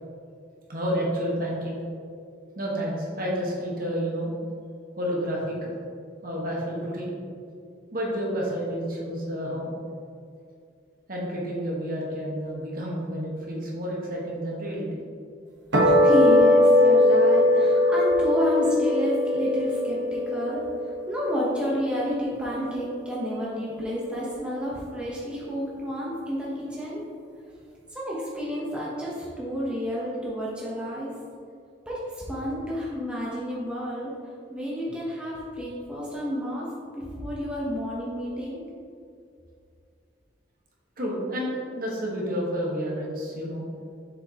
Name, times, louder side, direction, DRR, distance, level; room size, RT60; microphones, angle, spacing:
voice 1, 0.7-1.7 2.6-4.3 5.0-5.7 6.2-7.1 7.9-9.7 11.1-15.0 41.0-43.6, equal, 50° right, -4 dB, 1.3 m, -30 dB
sound 1, 15.7-22.2, left 1 dB, 75° right, 1.1 m, -20 dB
voice 2, 15.8-27.0 27.9-31.1 31.9-34.1 34.5-36.7 37.0-38.6, equal, 5° right, -7 dB, 0.8 m, -30 dB
6.7 x 5.1 x 2.9 m, 2.4 s
head